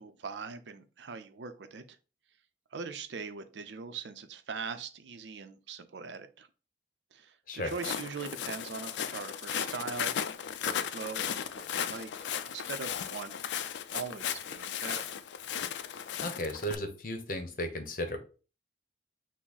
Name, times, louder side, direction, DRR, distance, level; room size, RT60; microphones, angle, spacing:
voice 1, 0.0-1.8 2.7-6.5 7.1-10.2 10.6-11.4 11.7-12.3 12.5-13.7 13.9-15.1, right 5 dB, 90° right, 10 dB, 0.5 m, -41 dB
Walk footsteps, 7.7-16.8, left 8 dB, 85° left, 0.4 m, -36 dB
voice 2, 16.2-18.2, equal, 50° left, 6 dB, 0.8 m, -35 dB
6.0 x 2.1 x 4.0 m, 0.35 s
head